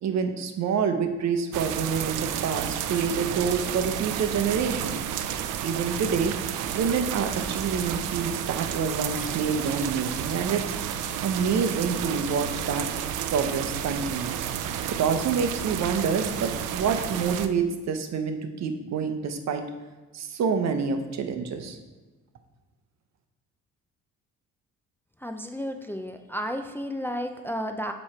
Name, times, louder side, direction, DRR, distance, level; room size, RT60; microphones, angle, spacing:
voice 1, 0.0-5.0 5.6-6.3 6.7-10.6 11.2-12.9 13.3-14.4 14.9-19.6 20.1-21.8, right 6 dB, 65° right, 7 dB, 0.8 m, -27 dB
sound 1, 1.5-17.5, right 9 dB, 90° right, 0.5 m, -31 dB
voice 2, 25.2-27.9, equal, 5° left, 5 dB, 0.4 m, -32 dB
7.4 x 3.2 x 4.3 m, 1.3 s
cardioid pair, 90°, 30 cm